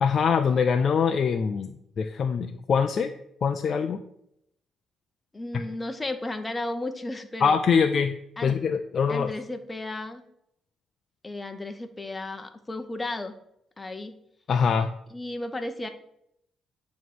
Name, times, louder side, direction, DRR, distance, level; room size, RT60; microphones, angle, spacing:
voice 1, 0.0-3.1 3.4-4.0 5.5-5.7 7.4-8.1 8.4-9.3 14.5-14.9, left 6 dB, 55° left, 6 dB, 0.4 m, -23 dB
voice 2, 5.3-7.6 8.4-8.6 9.1-10.2 11.2-13.3 13.8-14.1 15.1-15.9, left 2 dB, 20° left, 6 dB, 0.8 m, -34 dB
9.1 x 3.1 x 6.2 m, 0.76 s
cardioid pair, 90°, 0 cm